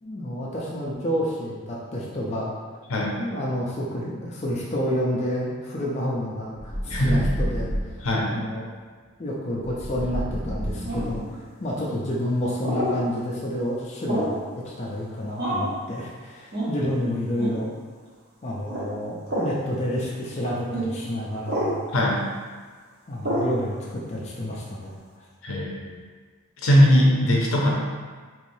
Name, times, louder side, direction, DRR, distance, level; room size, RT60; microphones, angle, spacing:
voice 1, 0.0-2.5 3.2-7.7 8.3-8.7 9.2-14.3 14.6-17.7 18.4-21.8 23.1-25.0, equal, 30° left, -5 dB, 0.4 m, -29 dB
sound 1, 6.5-8.1 9.6-11.4, equal, 15° right, 0.7 m, -30 dB
voice 2, 6.9-7.2 8.0-8.3 21.9-22.2 25.4-25.9 26.6-27.7, equal, 75° left, -2 dB, 0.6 m, -20 dB
sound 2, 10.9-11.2 12.6-13.0 14.1-14.4 15.4-15.7 16.5-16.7 17.4-17.6 18.7-18.9 19.3-19.5 20.7-20.9 21.5-21.8 23.2-23.5, right 1 dB, 50° right, 0.8 m, -27 dB
3.2 x 3.1 x 2.6 m, 1.5 s
head